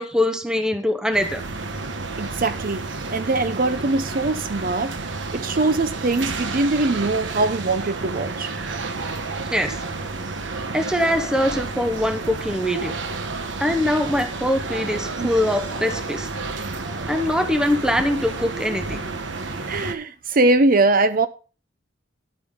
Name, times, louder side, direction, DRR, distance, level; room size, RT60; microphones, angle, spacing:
voice 1, 0.0-1.4 9.5-9.8 10.7-12.9 13.6-16.3 17.1-19.0, left 1 dB, 5° right, 0.9 m, -22 dB
sound 1, 1.1-20.0, right 3 dB, 75° right, 1.2 m, -31 dB
voice 2, 2.2-2.8 3.1-5.0 5.3-8.5 15.2-15.3 19.7-21.3, right 2 dB, 45° right, 0.6 m, -21 dB
11.5 x 8.6 x 3.7 m
head